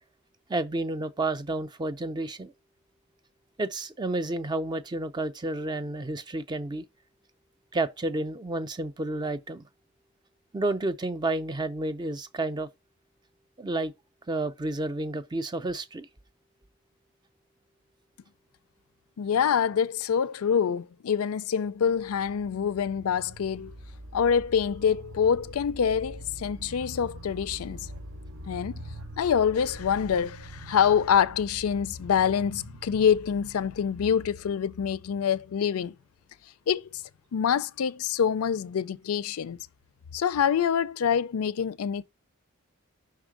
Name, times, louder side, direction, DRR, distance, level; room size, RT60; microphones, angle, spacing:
voice 1, 0.5-2.5 3.6-6.9 7.7-9.7 10.5-12.7 13.6-13.9 14.3-16.1, right 2 dB, 20° right, 0.4 m, -30 dB
voice 2, 19.2-23.7 24.1-27.9 28.5-28.8 29.2-35.9 36.7-36.9 37.3-39.6 40.1-42.0, left 7 dB, 85° left, 0.4 m, -26 dB
sound 1, 21.7-34.5, equal, 65° right, 0.7 m, -44 dB
5.7 x 3.5 x 4.9 m
head